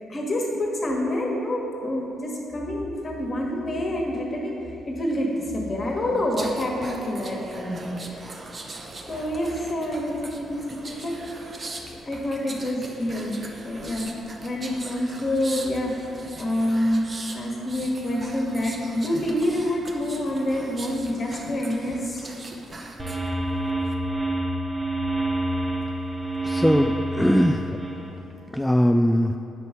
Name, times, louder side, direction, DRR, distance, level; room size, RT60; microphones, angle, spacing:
voice 1, 0.1-4.5 4.8-5.3 5.5-8.2 8.5-8.6 9.1-11.2 12.0-13.4 13.6-14.1 14.4-15.9 16.4-17.0 17.3-22.3, left 1 dB, 35° left, -1 dB, 1.5 m, -27 dB
sound 1, 6.3-23.3 23.7-23.9, right 2 dB, 35° right, 0.8 m, -40 dB
sound 2, 23.0-28.1, right 1 dB, 20° right, 1.2 m, -27 dB
voice 2, 26.4-27.7 28.5-29.4, equal, 5° left, 5 dB, 0.3 m, -20 dB
8.0 x 5.4 x 4.8 m, 2.8 s
figure-of-eight pair, 40°, 0 cm